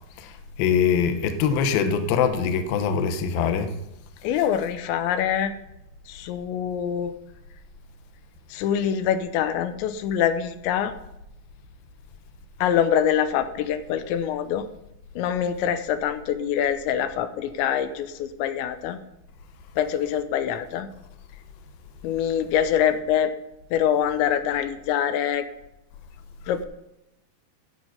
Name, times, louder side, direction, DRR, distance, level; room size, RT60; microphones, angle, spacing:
voice 1, 0.2-3.8, left 7 dB, 75° left, 2.3 m, -23 dB
voice 2, 4.2-5.5 6.1-7.1 8.5-10.9 12.6-14.6 15.2-19.0 19.8-20.9 22.0-23.3 23.7-25.5 26.5-26.6, left 9 dB, 90° left, 3.0 m, -24 dB
11.5 x 8.0 x 5.9 m
omnidirectional pair, 5.2 m